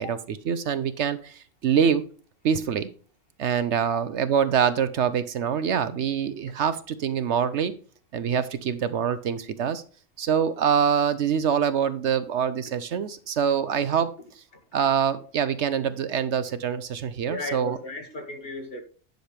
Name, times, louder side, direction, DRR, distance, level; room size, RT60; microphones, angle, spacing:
voice 1, 0.0-2.0 2.4-2.9 3.4-7.7 8.1-9.8 10.2-14.1 14.7-17.8, right 7 dB, 65° right, 0.9 m, -25 dB
voice 2, 17.3-18.8, left 2 dB, 45° left, 1.9 m, -35 dB
10.5 x 6.6 x 3.3 m
omnidirectional pair, 1.3 m